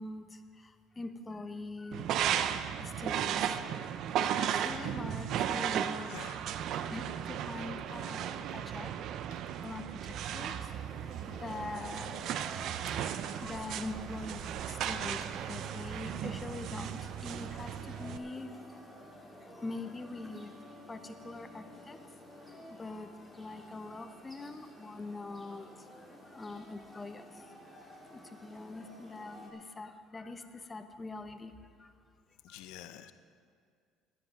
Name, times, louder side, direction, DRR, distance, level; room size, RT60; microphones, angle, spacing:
voice 1, 0.0-2.1 2.5-3.6 4.4-6.2 6.9-9.0 9.6-10.7 11.2-12.1 12.5-12.8 13.1-14.4 14.7-18.5 19.6-20.5 20.9-22.0 22.8-25.7 26.3-27.5 28.1-31.5 31.8-31.9 32.5-32.6 33.0-33.1, left 3 dB, 20° left, 9 dB, 0.8 m, -43 dB
sound 1, 1.9-18.2, right 9 dB, 60° right, 0.5 m, -35 dB
voice 2, 6.0-6.4 32.4-33.1, left 13 dB, 80° left, 11 dB, 0.6 m, -48 dB
sound 2, 10.6-29.5, equal, ahead, 2.0 m, -52 dB
10.5 x 10.0 x 6.0 m, 2.1 s
cardioid pair, 110°, 0 cm